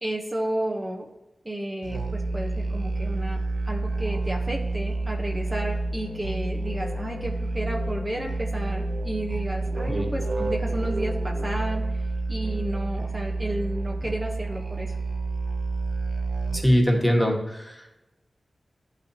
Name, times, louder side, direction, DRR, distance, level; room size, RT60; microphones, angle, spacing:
voice 1, 0.0-1.1 1.4-15.0, right 1 dB, 35° right, 0 dB, 0.8 m, -32 dB
Musical instrument, 1.8-16.8, right 2 dB, 75° right, 0.5 m, -29 dB
voice 2, 16.5-17.9, equal, 5° left, 0 dB, 1.4 m, -22 dB
10.5 x 4.1 x 2.7 m, 1.0 s
cardioid pair, 40°, 0 cm